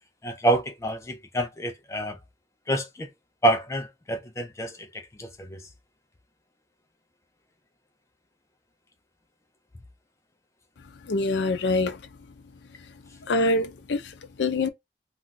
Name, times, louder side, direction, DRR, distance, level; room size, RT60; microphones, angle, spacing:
voice 1, 0.2-2.2 2.7-3.1 3.4-5.6, right 1 dB, 15° left, 0.3 m, -27 dB
voice 2, 11.0-12.0 13.2-14.7, left 2 dB, 80° left, 0.5 m, -25 dB
2.3 x 2.2 x 3.9 m
head